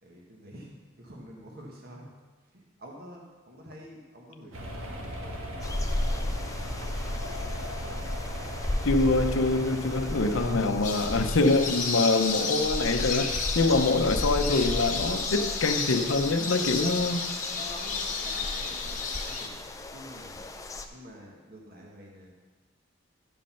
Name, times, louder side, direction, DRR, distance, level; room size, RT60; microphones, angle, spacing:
voice 1, 0.0-2.1 2.5-7.7 16.6-17.0 17.5-19.5 19.9-20.4 20.9-22.3, equal, 50° right, -2 dB, 1.6 m, -48 dB
sound 1, 4.5-10.5, equal, 85° right, 1.5 m, -38 dB
sound 2, 5.6-20.9, left 1 dB, 15° left, 0.5 m, -35 dB
voice 2, 8.8-17.3, left 3 dB, 75° left, 7 dB, 0.7 m, -25 dB
sound 3, 10.8-19.5, left 5 dB, 40° left, 1.0 m, -32 dB
11.0 x 5.3 x 5.7 m, 1.3 s
head